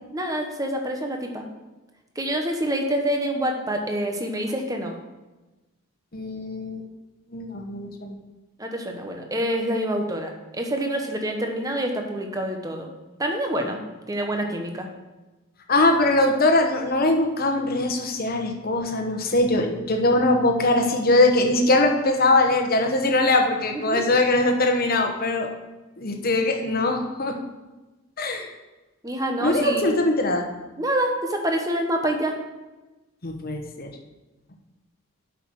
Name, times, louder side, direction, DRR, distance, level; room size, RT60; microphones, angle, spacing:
voice 1, 0.1-1.4 2.1-4.9 8.6-12.9 13.2-13.8 14.1-14.9 23.7-24.0 29.0-29.9 30.8-32.3, right 1 dB, 15° right, 3 dB, 1.0 m, -26 dB
voice 2, 6.1-6.8 7.3-8.2 15.7-25.5 26.0-27.4 28.2-28.5 29.4-30.5 33.2-33.9, left 2 dB, 45° left, 3 dB, 1.1 m, -21 dB
7.9 x 5.9 x 6.3 m, 1.1 s
head